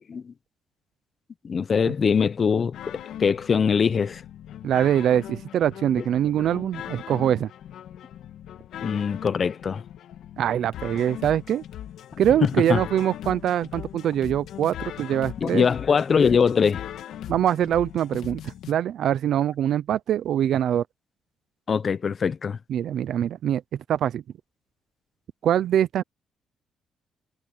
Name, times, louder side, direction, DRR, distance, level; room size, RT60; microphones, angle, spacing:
voice 1, 1.4-4.2 8.8-9.8 12.4-12.8 15.4-16.8 21.7-22.6, left 6 dB, 45° left, 0.8 m, -22 dB
sound 1, 2.7-18.7, left 11 dB, 80° left, 2.2 m, -40 dB
voice 2, 4.6-7.5 10.4-11.6 12.2-15.7 17.3-20.8 22.7-23.6 23.9-24.2 25.4-26.0, right 10 dB, 70° right, 0.7 m, -23 dB
cardioid pair, 90°, 0 cm